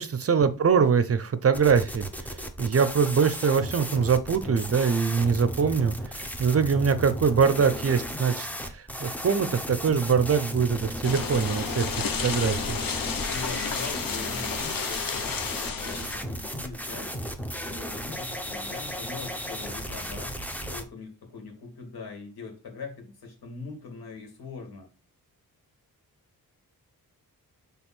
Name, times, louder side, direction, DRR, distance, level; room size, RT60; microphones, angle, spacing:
voice 1, 0.0-12.8, right 6 dB, 40° right, 12 dB, 0.6 m, -23 dB
sound 1, 1.5-20.8, equal, 5° left, 0.8 m, -35 dB
sound 2, 11.0-16.2, left 6 dB, 65° left, 1.0 m, -32 dB
voice 2, 13.3-17.1 17.7-20.4 20.7-24.9, left 4 dB, 90° left, 3 dB, 2.4 m, -42 dB
6.3 x 3.5 x 6.0 m, 0.32 s
wide cardioid pair, 145°, 36 cm